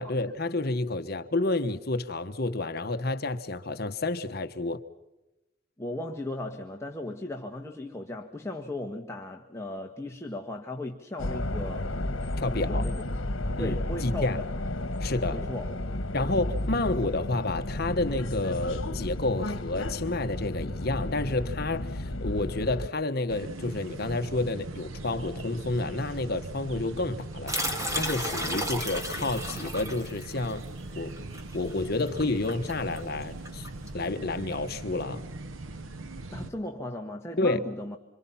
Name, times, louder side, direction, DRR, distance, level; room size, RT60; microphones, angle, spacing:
voice 1, 0.0-4.8 12.4-12.9 13.6-14.4 15.0-15.4 16.1-27.6 27.9-30.6 31.0-31.1 31.5-33.7 33.9-35.2 37.4-37.6, left 2 dB, 50° left, 1.3 m, -30 dB
voice 2, 5.8-11.9 12.5-13.0 13.6-14.5 15.3-15.7 36.3-38.0, left 1 dB, 15° left, 1.6 m, -36 dB
sound 1, 11.2-22.9, left 1 dB, 75° left, 1.6 m, -32 dB
sound 2, 23.3-36.5, right 2 dB, 85° right, 1.0 m, -40 dB
sound 3, 27.5-33.9, equal, 15° right, 3.0 m, -34 dB
27.0 x 27.0 x 5.7 m
head